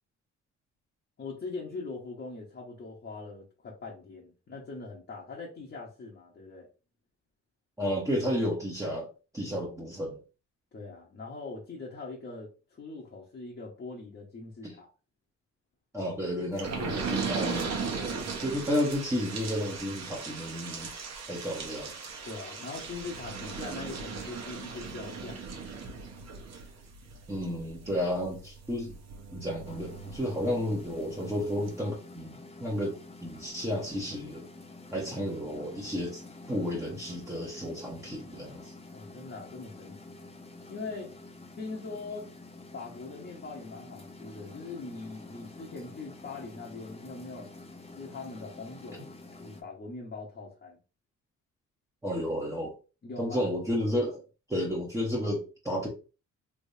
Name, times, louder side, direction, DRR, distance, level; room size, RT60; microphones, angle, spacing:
voice 1, 1.2-6.7 10.7-14.9 22.2-25.5 38.9-40.2 40.7-41.1 41.5-42.3 42.7-47.5 47.9-49.1 49.4-50.8 53.0-53.5, left 3 dB, 40° left, 1.1 m, -42 dB
voice 2, 7.8-9.1 9.3-10.2 14.6-14.7 15.9-20.9 21.3-21.9 27.3-28.9 29.3-33.0 33.2-34.4 34.9-36.2 36.5-38.7 52.0-52.8 53.2-54.2 54.5-55.9, equal, 10° right, 1.1 m, -32 dB
sound 1, 16.6-30.9 31.3-31.4 31.7-31.8, right 5 dB, 60° right, 1.0 m, -38 dB
sound 2, 29.6-49.6, left 2 dB, 20° left, 0.7 m, -48 dB
3.4 x 3.0 x 2.7 m
cardioid pair, 90°, 30 cm